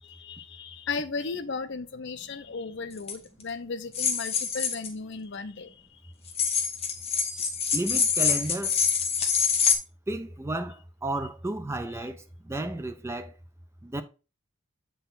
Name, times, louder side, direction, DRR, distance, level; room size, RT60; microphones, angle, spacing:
voice 1, 0.0-6.0 9.2-9.3, left 4 dB, 55° left, 0.6 m, -36 dB
sound 1, 3.0-3.1 3.9-4.9 6.3-9.8, left 6 dB, 25° left, 1.1 m, -25 dB
voice 2, 7.7-8.8 10.1-13.3 13.8-14.0, right 1 dB, 10° right, 0.4 m, -33 dB
7.9 x 4.0 x 4.0 m
head